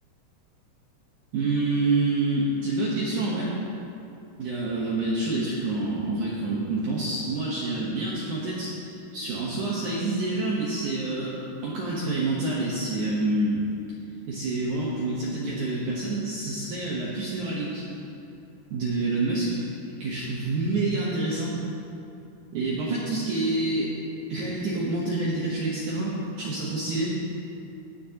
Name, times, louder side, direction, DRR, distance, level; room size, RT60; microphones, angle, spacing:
voice 1, 1.3-3.5 4.4-11.4 11.6-13.6 14.3-17.9 18.7-19.6 20.0-21.6 22.5-23.9 24.3-27.2, right 2 dB, 70° right, -6 dB, 1.9 m, -27 dB
17.0 x 9.4 x 2.9 m, 2.7 s
omnidirectional pair, 4.9 m